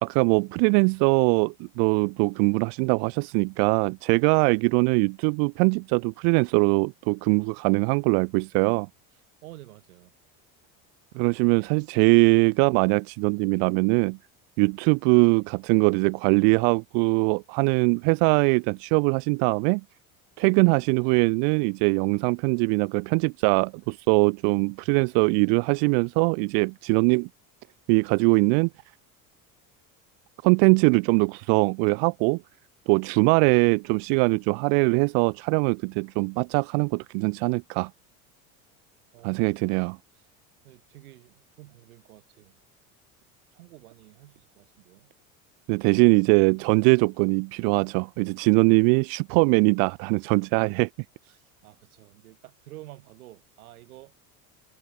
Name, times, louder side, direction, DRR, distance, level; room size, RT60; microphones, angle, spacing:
voice 1, 0.0-8.9 11.1-14.2 14.6-19.8 20.4-27.3 27.9-28.7 30.4-32.4 32.9-37.9 39.2-40.0 45.7-50.9, right 40 dB or more, 65° right, 0.6 m, -22 dB
voice 2, 9.1-10.1 39.1-39.4 40.1-40.3 40.6-42.6 43.5-45.1 51.2-54.3, right 17 dB, 90° right, 2.7 m, -50 dB
supercardioid pair, 100°, 42 cm